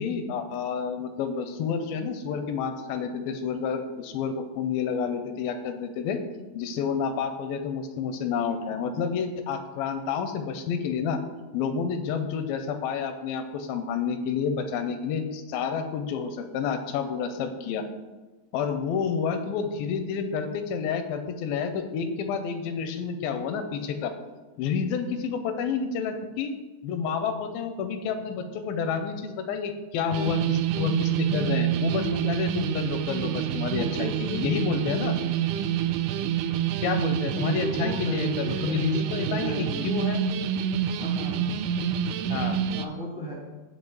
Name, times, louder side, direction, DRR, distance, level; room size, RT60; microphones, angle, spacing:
voice 1, 0.0-6.2 6.5-11.2 11.5-17.9 18.5-24.1 24.6-26.5 26.8-35.2 36.8-40.3 42.3-42.6, left 6 dB, 85° left, 8 dB, 2.5 m, -29 dB
sound 1, 30.1-42.9, right 9 dB, 90° right, 1.8 m, -27 dB
voice 2, 33.8-34.2 37.4-40.1 40.9-41.4 42.7-43.4, equal, 10° right, -6 dB, 0.3 m, -35 dB
15.5 x 5.5 x 3.1 m, 1.2 s
omnidirectional pair, 4.3 m